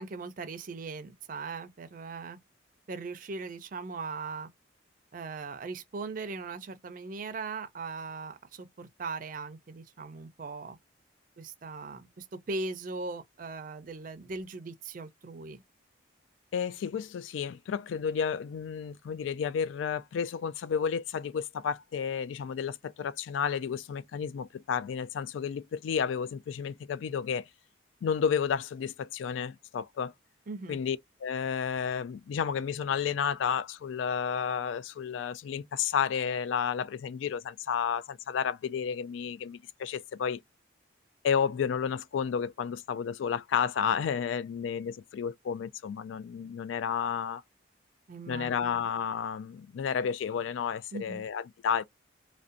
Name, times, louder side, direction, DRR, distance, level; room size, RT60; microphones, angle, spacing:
voice 1, 0.0-2.4 2.9-4.5 5.1-10.8 11.4-15.6 30.5-30.8 48.1-48.9 50.9-51.2, right 3 dB, 45° right, 0.4 m, -39 dB
voice 2, 16.5-27.5 28.0-30.1 30.7-40.4 41.2-47.4 48.3-51.8, left 7 dB, 80° left, 0.3 m, -31 dB
2.5 x 2.1 x 2.4 m
head